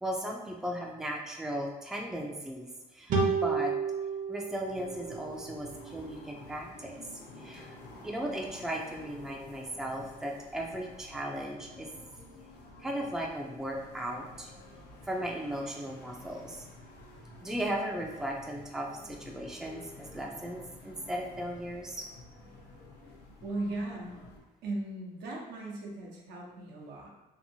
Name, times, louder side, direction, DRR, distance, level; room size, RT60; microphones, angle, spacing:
voice 1, 0.0-3.7 4.3-6.9 7.4-7.8 8.0-11.9 12.8-14.5 15.0-16.6 17.4-22.1, right 1 dB, 5° right, 0 dB, 0.4 m, -36 dB
sound 1, 3.1-6.5, right 4 dB, 50° right, 0.7 m, -32 dB
sound 2, 4.6-24.4, left 1 dB, 90° left, 0.7 m, -51 dB
voice 2, 23.4-24.1 24.6-27.1, right 2 dB, 80° right, -2 dB, 0.8 m, -37 dB
2.9 x 2.6 x 2.6 m, 1.1 s
cardioid pair, 110°, 17 cm